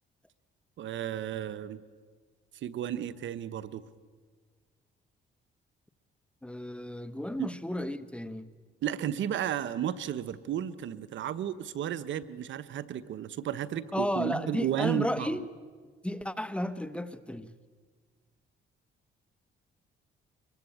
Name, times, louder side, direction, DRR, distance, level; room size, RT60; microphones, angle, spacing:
voice 1, 0.8-1.8 2.6-3.8 7.4-7.5 8.8-15.4, right 10 dB, 75° right, 1.0 m, -33 dB
voice 2, 6.4-8.5 13.9-15.5 16.0-17.5, left 1 dB, 5° left, 1.2 m, -33 dB
24.5 x 22.0 x 8.6 m
cardioid pair, 90°, 20 cm